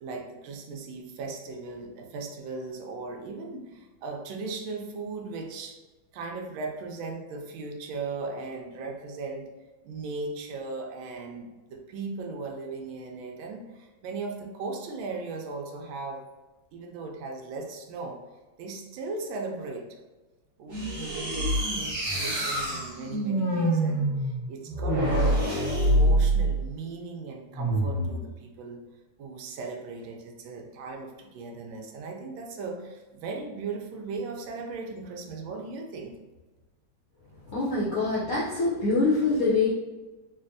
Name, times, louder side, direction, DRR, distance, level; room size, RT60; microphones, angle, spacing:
voice 1, 0.0-5.8 6.1-9.5 9.8-16.2 16.7-18.2 18.6-19.9 20.6-28.8 29.2-36.1, right 3 dB, 80° right, 2 dB, 1.3 m, -37 dB
sound 1, 20.7-26.6 27.5-28.2, right 1 dB, 45° right, 1.6 m, -26 dB
voice 2, 37.5-39.7, left 3 dB, 75° left, -7 dB, 0.8 m, -24 dB
4.1 x 2.3 x 2.5 m, 1.2 s
omnidirectional pair, 2.2 m